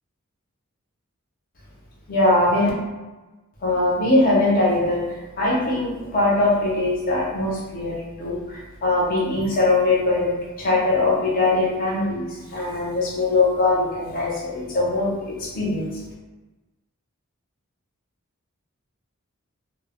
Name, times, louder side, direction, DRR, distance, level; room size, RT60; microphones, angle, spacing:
voice 1, 2.1-2.7 3.6-5.0 5.4-15.9, left 2 dB, 45° left, -5 dB, 0.7 m, -21 dB
2.2 x 2.1 x 3.5 m, 1.2 s
head